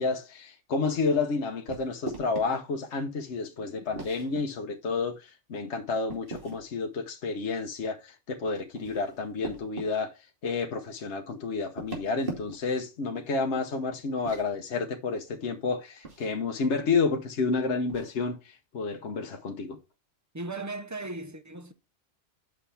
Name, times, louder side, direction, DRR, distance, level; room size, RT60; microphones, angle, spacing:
voice 1, 0.0-10.1 10.4-19.8, left 4 dB, 70° left, 1.3 m, -30 dB
sound 1, 1.7-2.5 3.9-4.4 6.1-6.7 8.6-9.9 11.7-12.8 14.1-14.5 16.0-16.3 17.9-18.2, right 2 dB, 50° right, 2.6 m, -39 dB
voice 2, 20.3-21.7, right 2 dB, 15° right, 0.7 m, -37 dB
8.2 x 5.7 x 3.3 m
omnidirectional pair, 1.2 m